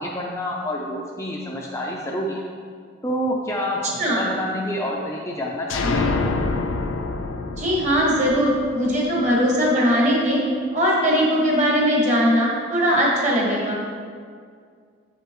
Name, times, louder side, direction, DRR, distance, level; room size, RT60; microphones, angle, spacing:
voice 1, 0.0-2.4 3.0-6.0, equal, 15° left, -2 dB, 0.4 m, -28 dB
sound 1, 5.7-9.4, left 3 dB, 75° left, 0.5 m, -26 dB
voice 2, 7.6-10.4 10.7-13.8, equal, 35° right, -3 dB, 1.4 m, -20 dB
7.7 x 6.7 x 3.0 m, 2.1 s
head